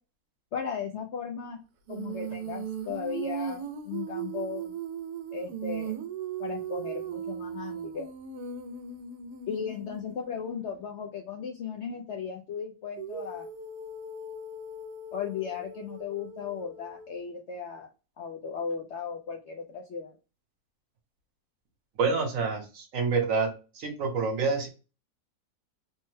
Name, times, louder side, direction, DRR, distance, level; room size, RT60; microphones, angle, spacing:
voice 1, 0.5-1.6 1.9-4.7 5.3-5.9 6.4-8.1 9.5-13.5 15.1-17.9 18.2-20.2, left 6 dB, 70° left, 2 dB, 0.7 m, -36 dB
Female singing, 1.9-10.8 13.0-17.2, right 6 dB, 85° right, 1.1 m, -38 dB
voice 2, 22.0-24.7, right 4 dB, 65° right, 3 dB, 1.2 m, -28 dB
3.3 x 2.1 x 3.1 m, 0.31 s
omnidirectional pair, 1.6 m